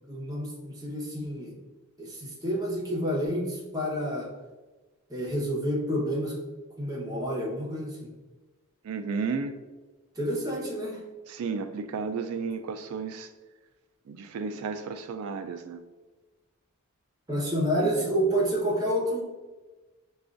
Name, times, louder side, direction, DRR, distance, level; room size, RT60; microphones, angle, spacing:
voice 1, 0.1-1.6 2.0-4.3 5.1-6.4 6.8-8.1 10.1-11.0 17.3-19.2, equal, 15° right, -3 dB, 0.9 m, -29 dB
voice 2, 8.8-9.6 11.3-13.3 14.1-15.8 17.8-18.1, right 5 dB, 85° right, 8 dB, 0.3 m, -33 dB
6.7 x 2.3 x 2.5 m, 1.2 s
head